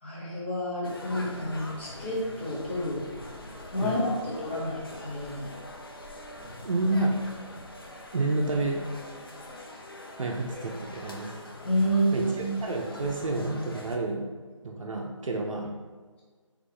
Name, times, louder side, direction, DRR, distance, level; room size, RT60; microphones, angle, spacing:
voice 1, 0.0-3.0 3.7-5.6 11.6-12.5, equal, 20° left, -8 dB, 0.9 m, -29 dB
sound 1, 0.8-13.9, left 1 dB, 45° left, 0.5 m, -44 dB
voice 2, 6.6-7.1 8.1-8.8 10.2-11.3 12.1-14.3 14.6-15.7, right 2 dB, 80° right, 1 dB, 0.6 m, -29 dB
4.0 x 3.0 x 3.2 m, 1.5 s
figure-of-eight pair, 170°, 17 cm